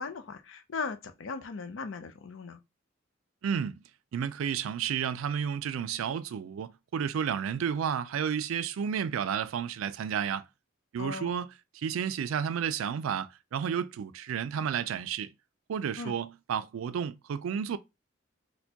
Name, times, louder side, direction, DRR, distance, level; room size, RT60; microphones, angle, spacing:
voice 1, 0.0-2.6 11.0-11.4 16.0-16.1, left 4 dB, 70° left, 0.5 m, -38 dB
voice 2, 3.4-3.8 4.1-10.4 10.9-11.5 11.7-15.3 15.7-17.8, right 7 dB, 85° right, 0.3 m, -31 dB
4.2 x 2.2 x 2.8 m
head